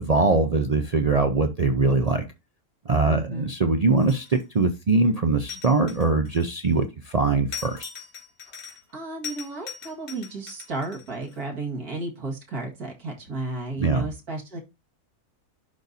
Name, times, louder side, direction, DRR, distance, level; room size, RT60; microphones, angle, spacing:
voice 1, 0.0-2.2 2.9-7.9 13.8-14.1, right 3 dB, 55° right, 5 dB, 0.4 m, -22 dB
voice 2, 3.1-3.5 8.9-14.6, right 2 dB, 75° right, 0 dB, 2.4 m, -33 dB
sound 1, 4.0-4.6 5.5-6.8 7.5-8.9 9.2-11.4, left 7 dB, 65° left, 2.3 m, -40 dB
11.0 x 4.0 x 2.7 m, 0.25 s
omnidirectional pair, 1.6 m